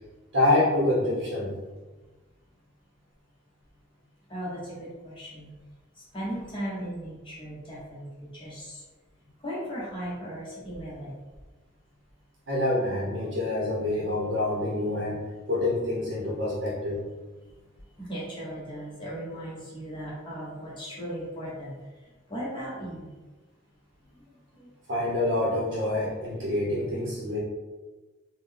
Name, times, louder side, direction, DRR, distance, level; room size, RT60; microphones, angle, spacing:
voice 1, 0.3-1.5 12.5-15.2 15.5-17.0 24.9-27.4, left 1 dB, 65° right, -5 dB, 0.8 m, -26 dB
voice 2, 4.3-5.5 5.9-8.8 9.4-11.1 18.0-21.7 22.3-23.1 24.5-24.7, equal, 25° left, -7 dB, 0.9 m, -37 dB
3.8 x 2.1 x 3.4 m, 1.2 s
head